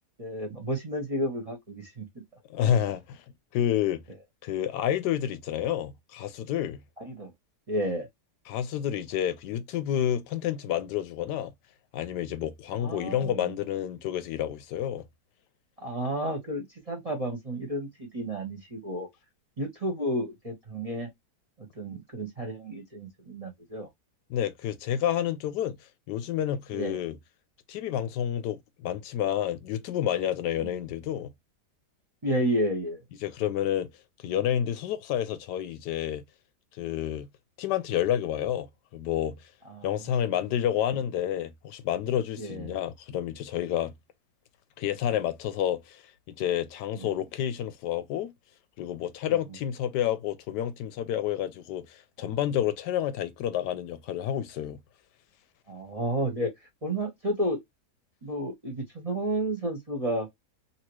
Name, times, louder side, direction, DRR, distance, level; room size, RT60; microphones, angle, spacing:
voice 1, 0.2-2.1 2.6-2.8 7.0-7.3 7.7-8.1 12.8-13.5 15.8-19.1 19.6-21.1 21.8-23.9 26.7-27.0 30.6-30.8 32.2-33.0 39.7-40.1 42.4-42.7 46.9-47.1 49.3-49.4 55.7-56.5 56.8-57.6 58.2-60.3, right 1 dB, 30° right, 0.7 m, -31 dB
voice 2, 2.5-3.2 3.5-4.0 4.4-6.8 8.5-11.5 11.9-15.0 24.3-25.8 26.1-27.2 27.7-31.3 33.2-33.9 34.2-36.2 36.8-37.3 37.6-38.7 38.9-39.4 39.8-43.9 44.8-46.0 46.3-48.3 48.8-54.8, left 10 dB, 90° left, 1.2 m, -29 dB
2.9 x 2.8 x 3.0 m
omnidirectional pair, 1.8 m